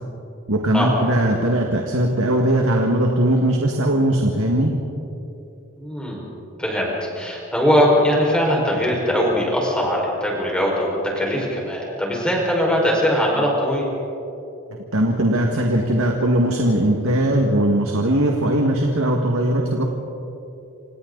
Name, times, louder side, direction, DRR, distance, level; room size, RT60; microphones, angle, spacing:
voice 1, 0.5-4.7 14.9-19.8, right 1 dB, 80° right, 1 dB, 2.0 m, -19 dB
voice 2, 5.8-6.3 6.6-13.9, equal, 5° left, -3 dB, 5.2 m, -21 dB
27.5 x 27.5 x 4.1 m, 2.8 s
head